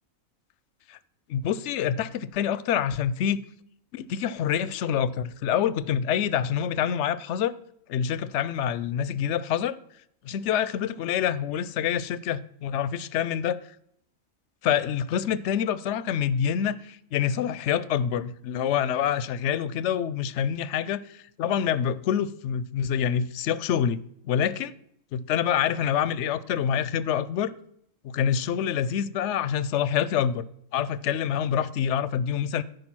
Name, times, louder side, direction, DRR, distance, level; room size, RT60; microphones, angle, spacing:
voice 1, 1.3-3.4 3.9-7.5 7.9-9.8 10.2-13.6 14.6-24.0 24.2-24.7 25.1-27.5 28.0-30.4 30.7-32.6, left 9 dB, 65° left, 0.8 m, -26 dB
14.0 x 5.1 x 6.1 m
omnidirectional pair, 1.4 m